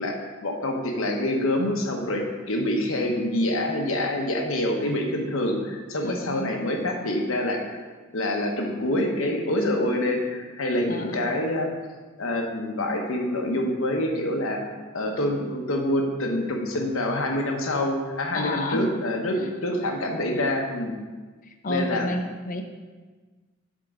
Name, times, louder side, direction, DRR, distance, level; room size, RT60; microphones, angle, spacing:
voice 1, 0.0-7.6 8.1-11.7 12.2-21.0 21.7-22.1, left 1 dB, 75° left, 2 dB, 0.9 m, -26 dB
voice 2, 6.0-6.5 10.9-11.2 18.3-18.8 19.3-19.5 21.4-22.6, left 1 dB, 40° left, 5 dB, 0.6 m, -31 dB
7.6 x 3.7 x 5.0 m, 1.4 s
head